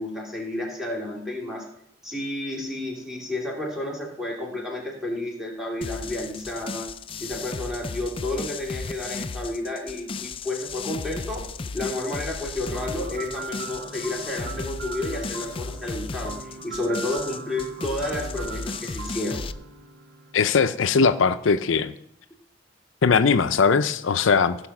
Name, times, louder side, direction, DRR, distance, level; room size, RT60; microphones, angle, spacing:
voice 1, 0.0-1.7 2.0-6.9 7.2-11.5 11.7-19.4, left 1 dB, ahead, -2 dB, 2.7 m, -31 dB
sound 1, 5.8-19.5, left 4 dB, 30° left, 0.4 m, -35 dB
sound 2, 12.7-20.6, right 5 dB, 55° right, 1.0 m, -40 dB
voice 2, 20.3-21.9 23.0-24.6, left 5 dB, 80° left, 11 dB, 0.5 m, -20 dB
15.5 x 5.7 x 5.9 m, 0.72 s
head